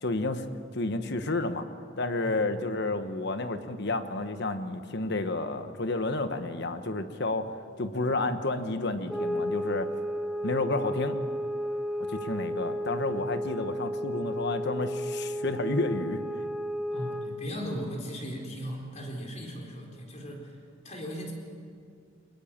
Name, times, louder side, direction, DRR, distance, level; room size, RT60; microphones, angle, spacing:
voice 1, 0.0-0.5 0.7-1.7 2.0-7.5 7.8-9.9 10.4-11.2 12.1-16.2, left 2 dB, 55° left, 9 dB, 1.3 m, -30 dB
voice 2, 2.2-2.6 16.9-20.6 20.8-21.3, equal, 35° left, 0 dB, 4.3 m, -37 dB
sound 1, 9.1-17.4, equal, ahead, 1.4 m, -33 dB
23.5 x 21.0 x 7.4 m, 2.2 s
head